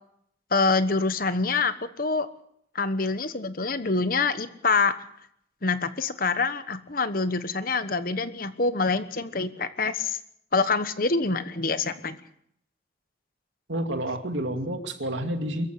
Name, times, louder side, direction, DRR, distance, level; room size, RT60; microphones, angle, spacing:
voice 1, 0.5-2.3 2.7-4.9 5.6-10.2 10.5-12.2, left 4 dB, 50° left, 12 dB, 1.2 m, -26 dB
voice 2, 13.7-15.7, right 1 dB, 80° right, 5 dB, 2.6 m, -29 dB
23.5 x 14.5 x 8.0 m, 0.73 s
head